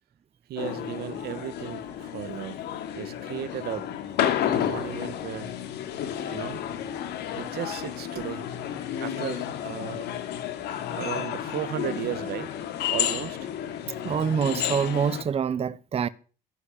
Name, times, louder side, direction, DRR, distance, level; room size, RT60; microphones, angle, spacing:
voice 1, 0.5-2.7 2.9-3.9 4.5-5.5 6.3-6.6 7.3-8.5 9.0-10.1 10.9-12.6 12.9-13.5, right 12 dB, 70° right, 1.4 m, -35 dB
sound 1, 0.6-15.2, left 10 dB, 80° left, 3.0 m, -31 dB
voice 2, 14.0-16.1, right 7 dB, 35° right, 0.9 m, -26 dB
13.5 x 12.5 x 8.5 m
cardioid pair, 110°, 17 cm